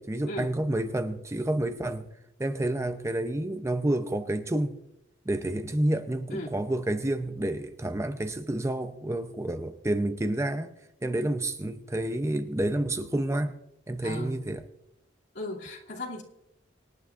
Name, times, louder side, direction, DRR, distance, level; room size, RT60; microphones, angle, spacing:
voice 1, 0.0-2.1 2.4-4.8 5.3-13.5 13.9-14.6, right 1 dB, 15° right, 0.6 m, -29 dB
voice 2, 14.0-14.4 15.3-16.2, left 1 dB, 65° left, 2.6 m, -36 dB
25.5 x 10.5 x 2.5 m
head